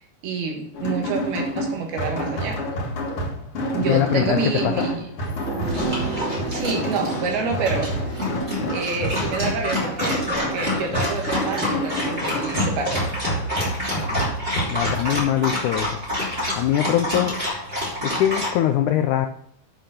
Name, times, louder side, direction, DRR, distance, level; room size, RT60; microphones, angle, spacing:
voice 1, 0.2-2.6 3.7-5.1 6.2-8.1 8.7-13.1, right 5 dB, 80° right, 3 dB, 3.5 m, -28 dB
sound 1, 0.7-15.2, equal, 50° left, 2.0 m, -28 dB
voice 2, 3.9-4.9 14.0-14.3 14.7-16.0 16.6-17.4 18.0-19.3, left 12 dB, 85° left, 6 dB, 1.7 m, -22 dB
sound 2, 5.3-14.6 14.9-15.0, right 3 dB, 35° right, 2.9 m, -35 dB
Dog, 5.6-18.5, left 1 dB, 15° right, 2.6 m, -28 dB
8.3 x 6.7 x 5.8 m, 0.66 s
omnidirectional pair, 4.4 m